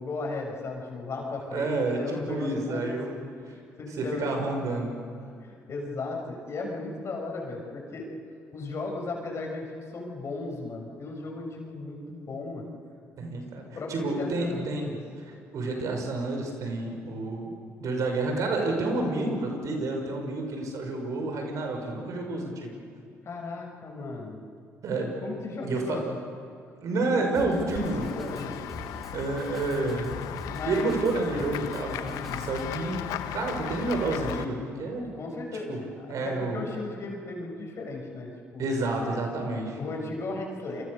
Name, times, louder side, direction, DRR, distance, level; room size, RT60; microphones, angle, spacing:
voice 1, 0.0-3.2 3.5-4.3 5.4-8.1 8.5-12.7 13.7-15.0 23.2-24.4 25.2-26.1 26.5-26.6 26.9-27.2 27.5-28.6 30.5-30.9 35.1-38.7 39.7-40.8, left 3 dB, 50° left, 1 dB, 6.8 m, -36 dB
voice 2, 1.5-3.5 4.0-4.9 13.2-14.9 15.5-17.5 17.8-22.7 24.8-25.1 25.6-26.0 26.8-28.1 29.1-30.1 30.6-35.1 35.7-35.8 36.1-36.6 38.6-39.8, right 2 dB, 65° right, 3 dB, 6.0 m, -29 dB
Drum kit, 27.3-32.7, left 1 dB, ahead, 4.3 m, -44 dB
Run / Walk footsteps / Bell, 27.7-34.5, left 11 dB, 80° left, 1.1 m, -36 dB
28.0 x 24.0 x 6.8 m, 2.3 s
supercardioid pair, 65°, 6 cm